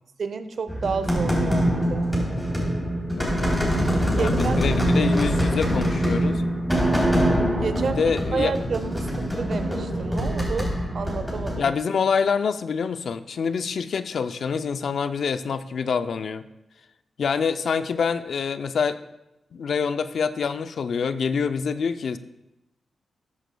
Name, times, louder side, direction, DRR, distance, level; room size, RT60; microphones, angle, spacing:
voice 1, 0.2-2.2 4.1-4.6 7.6-8.0 8.3-11.7, right 5 dB, 65° right, 11 dB, 0.7 m, -30 dB
sound 1, 0.7-11.5, equal, 5° left, 3.3 m, -24 dB
voice 2, 3.1-3.6 4.2-6.4 8.0-8.5 11.6-16.5 17.2-19.0 19.5-22.2, left 6 dB, 75° left, 11 dB, 0.5 m, -26 dB
13.5 x 8.2 x 2.3 m, 0.92 s
cardioid pair, 70°, 0 cm